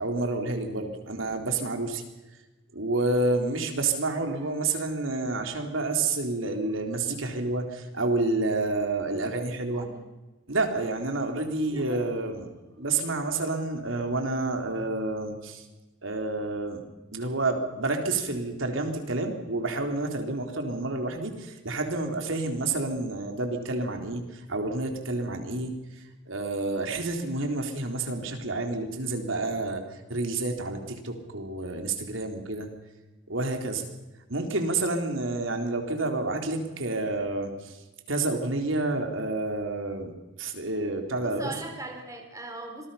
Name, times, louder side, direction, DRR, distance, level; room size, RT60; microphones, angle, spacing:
voice 1, 0.0-2.0 2.7-9.9 10.5-12.5 12.8-15.6 16.0-16.8 17.1-25.8 26.3-32.7 33.3-33.9 34.3-37.8 38.1-40.1 40.4-41.5, right 2 dB, 80° right, 4 dB, 3.9 m, -29 dB
voice 2, 9.1-10.0 11.6-13.4 41.2-42.9, right 2 dB, 15° right, 3 dB, 3.6 m, -41 dB
26.5 x 20.0 x 5.8 m, 1.1 s
head